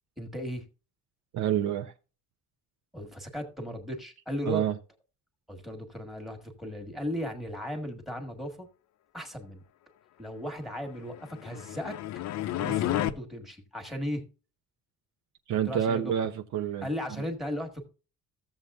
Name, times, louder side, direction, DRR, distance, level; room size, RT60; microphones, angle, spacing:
voice 1, 0.2-0.6 2.9-4.7 5.5-8.7 9.1-9.6 10.2-12.0 12.6-14.2 15.6-16.1 16.8-17.9, equal, ahead, 5 dB, 1.5 m, -36 dB
voice 2, 1.3-1.9 4.5-4.7 15.5-16.9, right 10 dB, 60° right, 6 dB, 0.8 m, -28 dB
sound 1, 11.2-13.1, left 13 dB, 55° left, 0.6 m, -31 dB
14.5 x 7.3 x 2.4 m, 0.34 s
cardioid pair, 160°, 33 cm